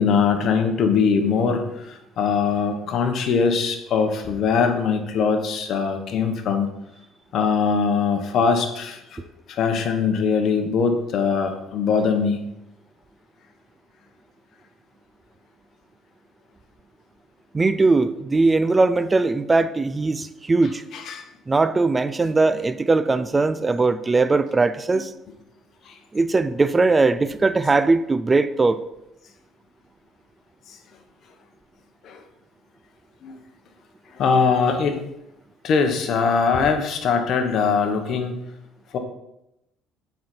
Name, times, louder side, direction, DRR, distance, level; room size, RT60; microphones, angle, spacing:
voice 1, 0.0-6.7 7.3-12.4 20.9-21.2 24.9-25.0 25.9-26.0 32.0-32.2 33.2-33.3 34.1-35.0 35.6-38.4 38.9-39.0, left 5 dB, 55° left, 5 dB, 1.2 m, -22 dB
voice 2, 17.5-20.8 21.5-25.1 26.1-28.8, right 3 dB, 20° right, 13 dB, 0.4 m, -20 dB
7.5 x 5.6 x 4.5 m, 0.87 s
cardioid pair, 110°, 0 cm